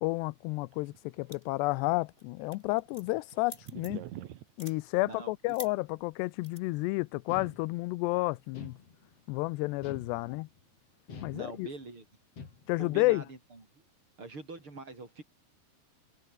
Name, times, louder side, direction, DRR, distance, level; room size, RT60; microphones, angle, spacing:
voice 1, 0.0-4.0 4.6-8.8 9.3-10.5 11.2-11.7 12.7-13.2, left 22 dB, 85° left, 2.8 m, -31 dB
sound 1, 0.7-1.7 2.0-2.1 2.4-4.5, right 13 dB, 75° right, 1.6 m, -45 dB
sound 2, 1.3-1.7 2.0-2.2 2.5-4.1 4.5-4.8 5.5-5.7 6.4-6.6, left 1 dB, 10° left, 6.4 m, -46 dB
voice 2, 5.0-5.3 9.9-10.2 11.3-12.0 12.8-13.6 14.2-15.2, right 3 dB, 30° right, 7.7 m, -44 dB
sound 3, 7.3-8.1 8.5-9.3 9.8-10.6 11.1-11.9 12.4-13.0, left 5 dB, 35° left, 4.2 m, -47 dB
omnidirectional pair, 4.9 m